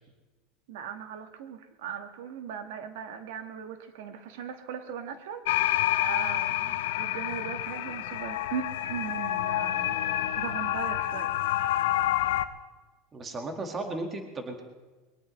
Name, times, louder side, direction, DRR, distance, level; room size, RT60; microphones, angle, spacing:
voice 1, 0.7-11.3, right 8 dB, 80° right, 7 dB, 1.5 m, -39 dB
sound 1, 5.4-12.4, left 14 dB, 90° left, 0.7 m, -28 dB
voice 2, 13.1-14.6, right 2 dB, 20° right, 4 dB, 1.7 m, -35 dB
22.0 x 17.5 x 3.2 m, 1.3 s
supercardioid pair, 155°, 0 cm